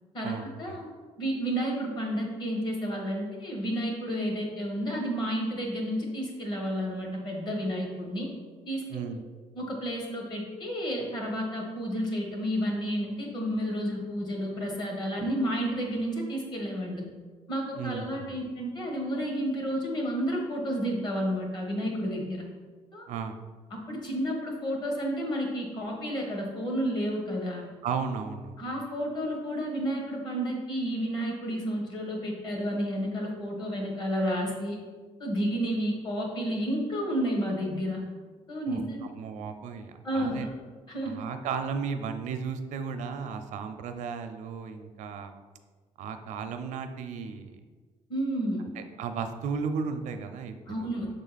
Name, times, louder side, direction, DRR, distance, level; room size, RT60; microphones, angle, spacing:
voice 1, 0.2-0.8 8.9-9.2 17.8-18.4 23.1-23.4 27.8-28.6 38.7-38.8 39.2-40.5 41.0-45.3 46.0-47.6 48.8-50.9, right 6 dB, 85° right, 8 dB, 0.5 m, -35 dB
voice 2, 1.2-8.3 8.7-8.8 9.5-17.0 17.5-22.5 22.9-23.0 23.7-27.6 28.6-34.8 35.2-38.0 38.5-39.0 40.0-40.5 40.9-41.2 48.1-48.6 50.7-51.1, equal, 35° left, 0 dB, 1.3 m, -31 dB
6.6 x 3.8 x 4.1 m, 1.4 s
cardioid pair, 170°, 12 cm